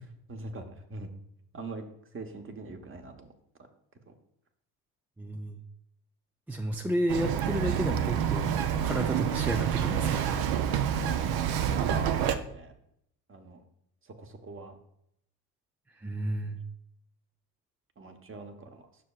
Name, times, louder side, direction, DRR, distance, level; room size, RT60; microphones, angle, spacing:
voice 1, 0.3-1.1 1.5-1.8 2.1-3.3 4.1-4.2 11.7-12.7 13.3-13.6 14.0-14.8 18.0-18.9, right 3 dB, 25° right, 6 dB, 1.1 m, -42 dB
voice 2, 5.2-5.6 6.5-8.5 8.8-10.3 16.0-16.6, right 1 dB, 5° right, 4 dB, 0.3 m, -31 dB
Bird vocalization bird call bird song, 7.1-12.4, right 9 dB, 50° right, 0.7 m, -28 dB
9.5 x 6.2 x 2.4 m, 0.74 s
hypercardioid pair, 70°, 48 cm